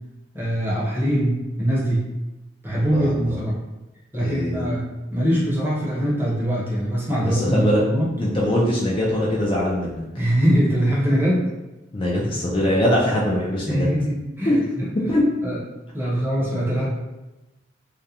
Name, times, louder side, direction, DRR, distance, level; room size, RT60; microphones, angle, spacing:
voice 1, 0.3-2.1 2.6-3.6 4.1-8.1 10.1-11.5 13.7-14.9 15.4-15.6 15.9-16.9, equal, 10° right, -6 dB, 0.6 m, -22 dB
voice 2, 2.7-3.4 4.2-4.6 7.2-7.8 8.2-10.0 11.9-13.9 14.5-14.6 15.1-15.3, left 1 dB, 25° left, -4 dB, 0.3 m, -22 dB
2.3 x 2.0 x 2.7 m, 1.0 s
head